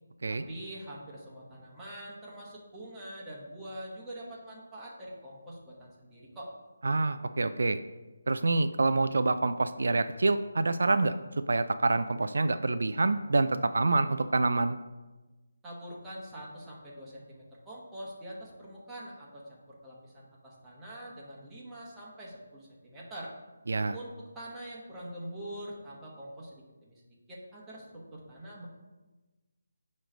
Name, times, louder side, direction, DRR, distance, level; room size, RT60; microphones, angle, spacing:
voice 1, 0.2-6.5 15.6-23.3 23.9-26.5 26.9-27.0 27.3-28.7, right 1 dB, 10° right, -7 dB, 1.3 m, -44 dB
voice 2, 6.8-7.8 8.3-11.2 11.5-14.8 23.7-24.0, right 3 dB, 75° right, 10 dB, 0.3 m, -27 dB
8.9 x 3.2 x 5.1 m, 1.2 s
figure-of-eight pair, 165°, 0 cm